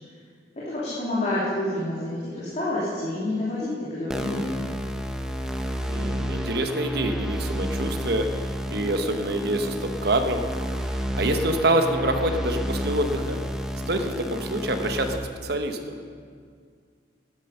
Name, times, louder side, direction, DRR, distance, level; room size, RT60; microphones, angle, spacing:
voice 1, 0.6-4.6, left 1 dB, 35° left, -9 dB, 2.7 m, -28 dB
sound 1, 4.1-15.2, equal, 5° right, 0.6 m, -30 dB
voice 2, 5.9-10.4 10.9-13.4 13.9-15.8, right 1 dB, 55° right, 6 dB, 1.1 m, -26 dB
13.0 x 10.5 x 5.6 m, 2.1 s
head